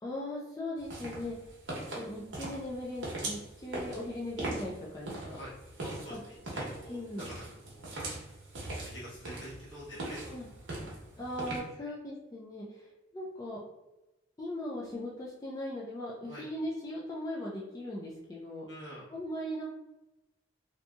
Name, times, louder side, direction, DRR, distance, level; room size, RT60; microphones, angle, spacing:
voice 1, 0.0-1.4 1.9-5.4 6.1-6.2 6.9-7.3 10.3-10.5 11.2-12.9 13.1-13.6 14.4-18.7 19.1-19.7, left 1 dB, 20° left, -5 dB, 0.3 m, -39 dB
sound 1, 0.8-11.6, right 2 dB, 80° right, 0.9 m, -41 dB
voice 2, 5.8-7.9 8.7-10.2 11.7-11.9 16.2-16.4 18.7-19.1, equal, 70° left, -8 dB, 1.3 m, -47 dB
2.7 x 2.6 x 2.2 m, 0.99 s
head